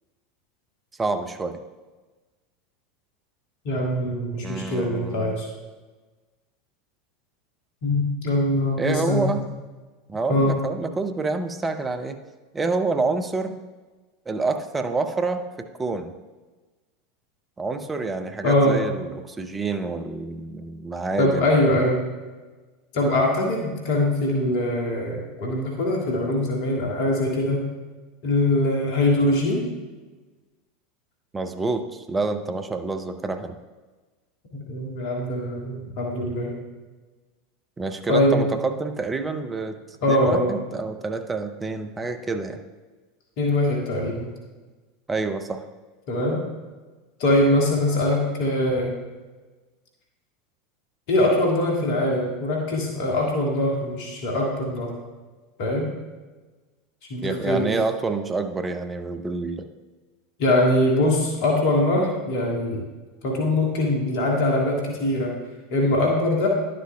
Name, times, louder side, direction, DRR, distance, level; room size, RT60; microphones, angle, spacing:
voice 1, 1.0-1.6 4.4-5.4 8.8-9.4 10.1-12.2 12.5-13.5 14.3-16.1 17.6-21.5 31.3-33.5 37.8-39.7 40.1-42.6 45.1-45.6 57.2-59.6, right 3 dB, 15° right, 7 dB, 0.6 m, -27 dB
voice 2, 3.6-5.5 7.8-9.4 10.3-10.5 18.4-18.8 21.2-22.0 22.9-27.6 28.2-29.7 34.5-36.5 38.1-38.5 40.0-40.6 43.4-44.3 46.1-46.4 47.2-49.0 51.1-54.9 55.6-55.9 57.1-57.7 60.4-62.8 63.2-65.3 65.7-66.5, left 1 dB, 55° left, -1 dB, 1.7 m, -22 dB
11.0 x 7.6 x 2.2 m, 1.3 s
figure-of-eight pair, 80°, 0 cm